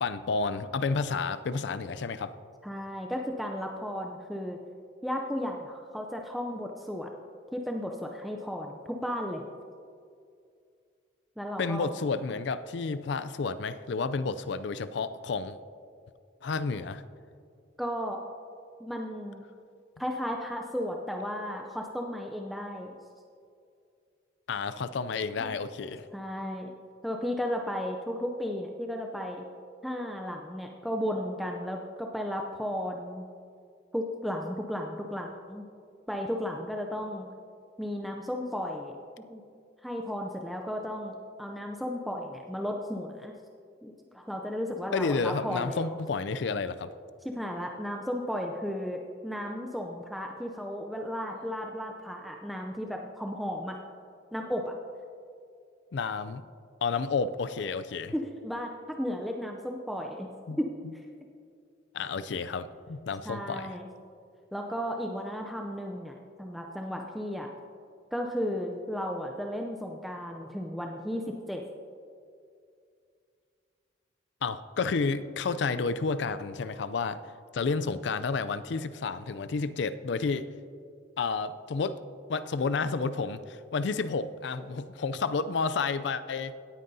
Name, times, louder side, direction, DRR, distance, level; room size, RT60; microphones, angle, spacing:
voice 1, 0.0-2.3 11.6-15.6 16.4-17.0 24.5-26.0 44.9-46.9 55.9-56.4 56.8-58.1 60.5-60.6 61.9-63.7 74.4-77.2 77.5-80.5 81.2-82.0 82.3-86.5, left 4 dB, 65° left, 13 dB, 0.4 m, -31 dB
voice 2, 2.6-4.6 5.0-7.1 7.5-9.4 11.4-11.9 17.8-18.2 18.8-19.4 20.0-23.0 25.4-25.5 26.1-26.7 27.0-29.4 29.8-33.3 33.9-35.6 36.1-37.3 37.8-38.9 39.3-39.4 39.8-43.3 43.8-46.0 47.2-53.8 54.3-54.7 58.1-60.3 60.6-61.1 63.2-63.9 64.5-67.5 68.1-71.6, equal, ahead, 1 dB, 0.4 m, -34 dB
17.0 x 9.0 x 2.7 m, 2.4 s
head